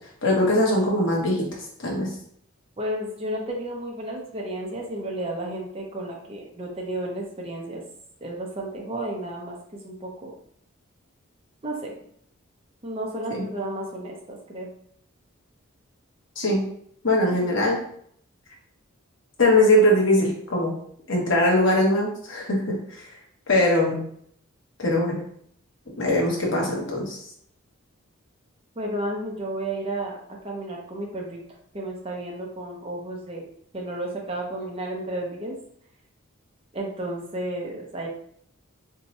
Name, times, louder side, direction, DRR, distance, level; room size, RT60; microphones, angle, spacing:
voice 1, 0.2-1.4 1.8-2.1 13.3-13.4 16.4-16.6 17.0-17.8 19.4-20.7 21.1-22.8 23.5-24.0 24.8-25.2 26.0-27.2, left 1 dB, 55° left, -2 dB, 0.9 m, -21 dB
voice 2, 2.8-7.8 8.2-10.3 11.6-11.9 12.8-14.7 17.3-17.7 28.8-30.2 30.4-31.4 31.7-33.4 33.7-35.5 36.7-38.1, right 1 dB, 25° right, -1 dB, 0.5 m, -32 dB
2.7 x 2.1 x 4.0 m, 0.67 s
head